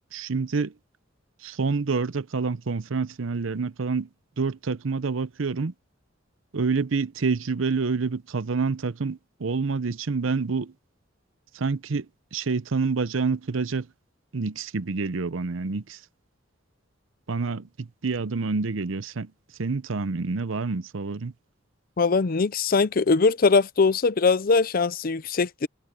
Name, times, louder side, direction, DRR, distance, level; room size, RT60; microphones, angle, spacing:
voice 1, 0.1-0.7 1.4-4.1 4.4-5.7 6.5-10.7 11.5-13.9 14.3-16.0 17.3-19.3 19.6-21.3, right 4 dB, 80° right, 0.7 m, -27 dB
voice 2, 22.0-25.7, left 4 dB, 45° left, 0.5 m, -21 dB
head